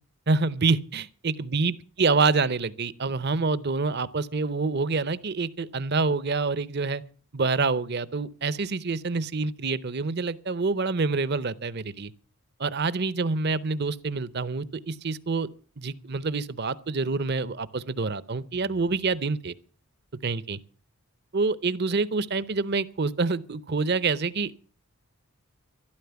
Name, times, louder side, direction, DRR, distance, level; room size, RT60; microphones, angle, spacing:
voice 1, 0.3-7.0 7.3-12.1 12.6-15.5 15.8-19.5 20.2-20.6 21.3-24.6, right 4 dB, 45° right, 0.7 m, -27 dB
13.0 x 12.5 x 7.0 m
head